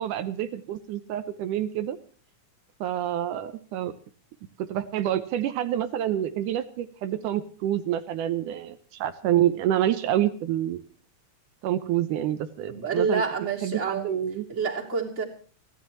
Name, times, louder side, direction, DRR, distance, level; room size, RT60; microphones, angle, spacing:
voice 1, 0.0-2.0 2.8-3.9 4.6-10.8 11.6-13.2 13.6-14.5, right 11 dB, 80° right, 10 dB, 2.4 m, -27 dB
voice 2, 12.7-14.1 14.5-15.2, right 5 dB, 20° right, -1 dB, 3.1 m, -28 dB
30.0 x 11.5 x 3.0 m, 0.41 s
omnidirectional pair, 3.7 m